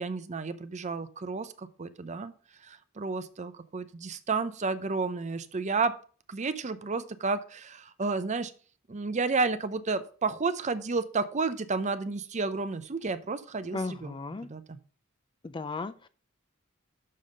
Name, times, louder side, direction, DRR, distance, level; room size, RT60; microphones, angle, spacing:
voice 1, 0.0-2.3 2.6-6.0 6.3-8.5 8.9-14.1 14.4-14.8, right 4 dB, 35° right, 12 dB, 0.6 m, -31 dB
voice 2, 13.7-14.5 15.4-16.1, left 3 dB, 25° left, 12 dB, 0.4 m, -35 dB
6.5 x 5.5 x 6.6 m, 0.41 s
head